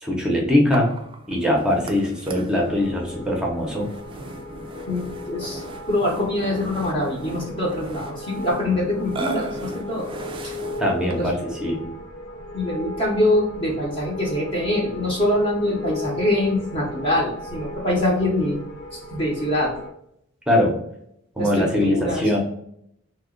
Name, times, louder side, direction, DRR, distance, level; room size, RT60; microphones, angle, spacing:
voice 1, 0.0-0.9 1.3-3.9 10.8-11.9 20.5-20.8 21.4-22.4, left 1 dB, 5° right, -2 dB, 0.7 m, -21 dB
Burping eructation, 0.7-11.4, right 3 dB, 25° right, 0.3 m, -38 dB
sound 1, 2.6-19.9, left 2 dB, 90° left, 0.7 m, -36 dB
voice 2, 4.9-5.6 5.9-10.1 10.4-10.5 11.1-11.3 12.5-18.6 18.9-19.7 21.4-22.4, left 1 dB, 25° left, -3 dB, 0.8 m, -24 dB
2.9 x 2.4 x 3.7 m, 0.73 s
head